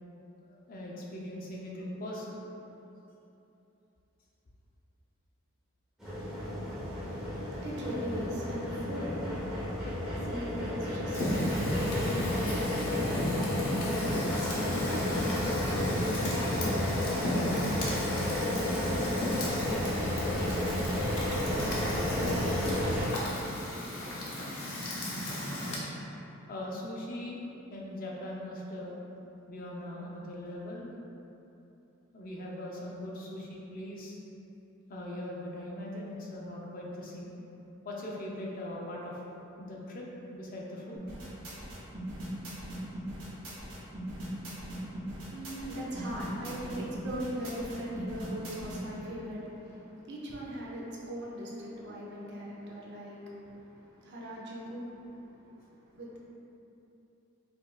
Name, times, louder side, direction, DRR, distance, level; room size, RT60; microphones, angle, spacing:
voice 1, 0.5-2.4 26.5-28.9 29.5-30.9 32.1-34.2 34.9-37.4 37.8-39.2 39.6-40.1 40.3-41.0 44.9-45.0, left 1 dB, 40° left, -3 dB, 0.4 m, -40 dB
sound 1, 6.0-23.0, left 1 dB, 5° right, 0.7 m, -32 dB
voice 2, 6.7-19.7 44.6-56.2, equal, 55° right, -4 dB, 0.6 m, -41 dB
Fire, 11.1-25.8, left 1 dB, 85° left, 0.7 m, -34 dB
sound 2, 40.9-48.8, right 1 dB, 75° right, 1.3 m, -40 dB
4.9 x 2.4 x 2.2 m, 2.9 s
head